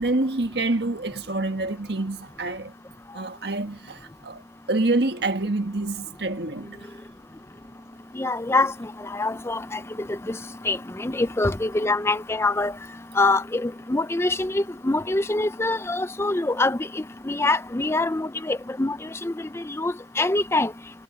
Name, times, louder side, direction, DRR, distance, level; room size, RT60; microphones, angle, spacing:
voice 1, 0.0-2.7 3.1-4.4 4.7-6.9, right 2 dB, 65° right, 1.7 m, -27 dB
voice 2, 8.2-8.7 9.1-9.8 10.3-10.4 10.7-12.7 13.2-16.8 17.3-19.0 19.2-19.3 19.8-20.7, left 2 dB, 15° left, 0.5 m, -24 dB
head